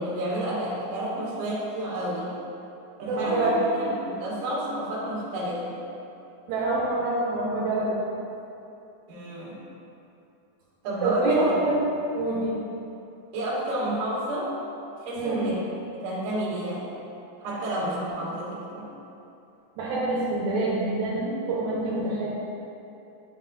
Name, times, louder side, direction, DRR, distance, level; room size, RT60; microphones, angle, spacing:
voice 1, 0.0-2.3 3.0-5.8 9.1-9.6 10.8-11.5 13.3-14.5 15.0-15.6 15.9-16.8 17.4-18.9, right 1 dB, 60° right, -7 dB, 2.7 m, -30 dB
voice 2, 3.0-3.6 6.5-8.0 11.0-12.6 15.2-15.5 19.8-22.3, right 2 dB, 75° right, -7 dB, 2.9 m, -26 dB
10.0 x 5.4 x 2.6 m, 2.8 s
omnidirectional pair, 5.2 m